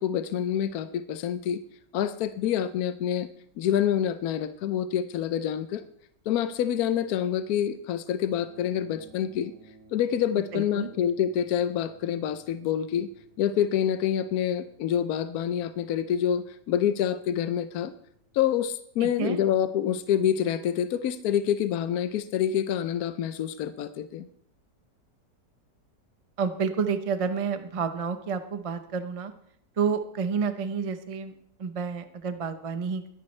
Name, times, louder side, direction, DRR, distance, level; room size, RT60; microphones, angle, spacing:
voice 1, 0.0-1.6 1.9-3.3 3.6-5.8 6.3-9.5 9.9-13.1 13.4-17.9 18.3-24.3, left 9 dB, 70° left, 11 dB, 1.0 m, -27 dB
sound 1, 8.4-18.5, right 2 dB, 70° right, 4.0 m, -57 dB
voice 2, 10.5-10.9 19.0-19.4 26.4-29.3 29.8-31.3 31.6-33.1, right 6 dB, 35° right, 9 dB, 0.5 m, -29 dB
21.5 x 10.5 x 3.2 m, 0.70 s
omnidirectional pair, 1.8 m